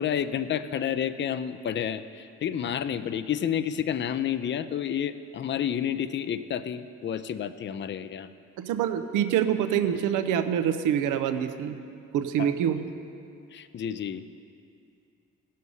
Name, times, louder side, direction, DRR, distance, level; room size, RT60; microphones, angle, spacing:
voice 1, 0.0-8.3 12.4-12.5 13.5-14.3, left 9 dB, 40° left, 12 dB, 0.5 m, -30 dB
voice 2, 8.6-11.8 12.1-12.9, right 9 dB, 90° right, 9 dB, 0.7 m, -26 dB
16.0 x 6.5 x 5.5 m, 2.5 s
cardioid pair, 90°, 30 cm